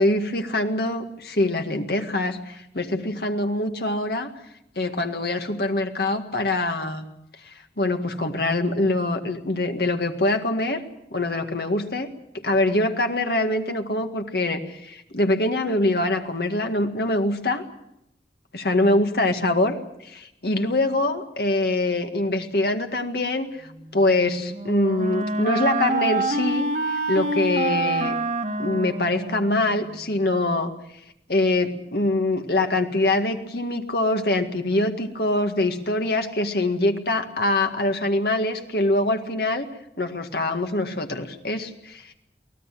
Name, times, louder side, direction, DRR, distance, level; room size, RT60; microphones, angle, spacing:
voice 1, 0.0-4.3 4.8-7.0 7.4-10.8 11.1-17.6 18.5-19.7 20.0-28.1 28.6-30.7 31.3-39.7 40.0-42.1, left 2 dB, 65° left, 5 dB, 1.9 m, -24 dB
Wind instrument woodwind instrument, 24.1-29.9, right 2 dB, 45° right, 1.4 m, -27 dB
24.0 x 17.5 x 7.6 m, 0.82 s
head